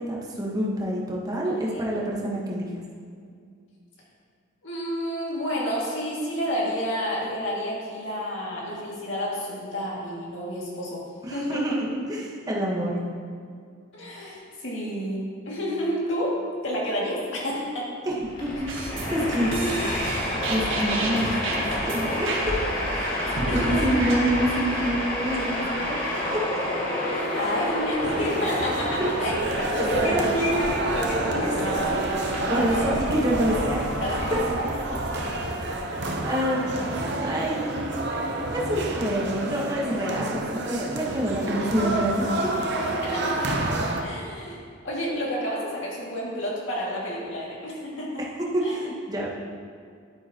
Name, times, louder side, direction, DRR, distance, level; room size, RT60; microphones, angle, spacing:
voice 1, 0.0-2.7 11.2-12.9 18.0-18.7 19.0-19.5 20.5-21.3 21.8-22.5 22.9-26.3 27.3-27.5 29.0-29.1 29.8-30.3 32.5-33.9 35.6-37.8 38.5-42.3 44.0-44.2 48.5-49.3, right 1 dB, 20° right, -4 dB, 1.3 m, -27 dB
voice 2, 1.4-2.0 4.6-11.0 11.3-11.8 13.9-16.3 16.6-17.9 19.5-20.0 20.5-20.7 23.4-24.0 27.4-32.7 34.0-34.7 41.4-41.5 43.1-43.7 44.0-44.6 44.8-48.2 48.6-48.9, equal, 70° left, -5 dB, 2.3 m, -30 dB
Train, 18.2-35.8, left 1 dB, 45° left, 2.4 m, -30 dB
sound 1, 18.7-24.4, right 2 dB, 90° right, 1.5 m, -32 dB
sound 2, 28.0-44.0, right 2 dB, 60° right, 0.8 m, -29 dB
10.5 x 8.8 x 3.0 m, 2.2 s
head